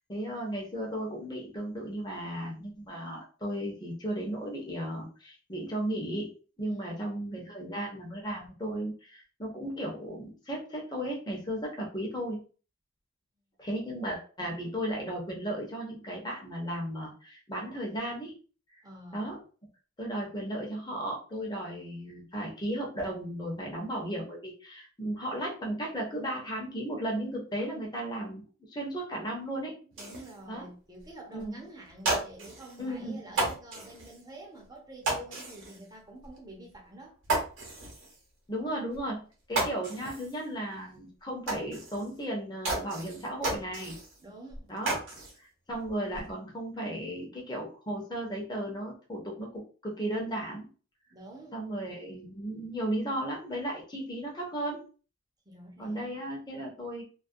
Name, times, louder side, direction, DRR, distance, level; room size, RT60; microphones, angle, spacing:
voice 1, 0.1-6.3 6.6-12.4 13.6-18.4 18.7-18.8 19.1-19.4 20.0-28.4 28.7-29.7 30.5-30.7 31.3-31.6 32.8-33.2 38.5-44.0 44.7-45.0 45.4-50.7 51.5-54.8 55.8-57.0, right 1 dB, 20° left, 0.6 m, -35 dB
voice 2, 6.6-7.1 18.8-19.4 29.9-37.2 44.2-44.7 51.1-51.6 55.5-56.1, right 1 dB, 20° right, 0.5 m, -48 dB
sound 1, 29.9-30.4 31.0-31.1 31.4-31.5 31.9-32.8 33.3-34.2 35.0-35.8 36.2-36.4 36.7-36.8 37.2-38.2 38.9-39.0 39.3-40.4 40.7-40.8 41.5-42.2 42.6-44.2 44.5-45.4 45.7-46.3, right 2 dB, 60° right, 0.8 m, -33 dB
2.3 x 2.1 x 2.6 m
head